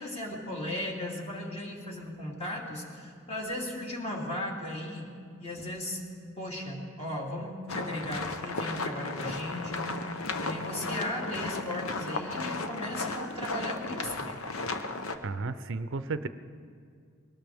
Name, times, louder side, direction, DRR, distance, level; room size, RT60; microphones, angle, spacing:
voice 1, 0.0-5.1 5.4-6.0 6.4-14.4, left 1 dB, 30° left, -2 dB, 2.5 m, -36 dB
sound 1, 7.7-15.2, left 3 dB, 85° left, 0.9 m, -35 dB
voice 2, 15.2-16.3, right 3 dB, 65° right, 11 dB, 0.6 m, -33 dB
22.0 x 18.5 x 3.5 m, 2.2 s
head